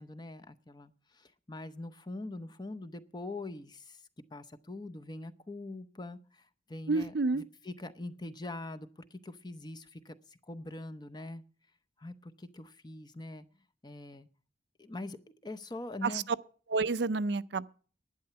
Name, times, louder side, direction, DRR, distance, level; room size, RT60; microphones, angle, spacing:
voice 1, 0.0-4.0 4.3-6.4 6.7-10.1 10.5-11.4 12.0-13.5 13.8-14.3 14.8-16.3, left 2 dB, 25° left, 0.7 m, -43 dB
voice 2, 6.9-7.4 16.0-16.2 16.7-17.7, right 3 dB, 65° right, 0.5 m, -29 dB
11.5 x 9.7 x 6.8 m
head